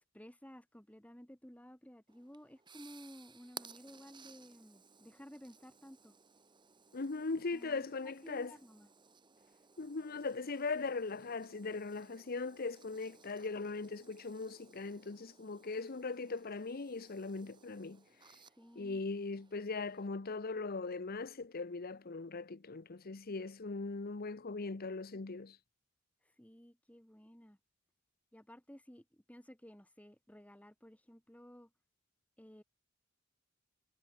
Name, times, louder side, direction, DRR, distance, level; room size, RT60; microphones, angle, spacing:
voice 1, 0.0-6.2 7.5-8.9 18.4-19.0 26.2-27.6 28.3-31.7 32.4-32.6, equal, 5° left, 1.9 m, -55 dB
sound 1, 2.1-20.1, right 5 dB, 25° right, 2.2 m, -59 dB
voice 2, 6.9-8.5 9.8-18.0 18.8-25.6, left 3 dB, 45° left, 0.8 m, -40 dB
head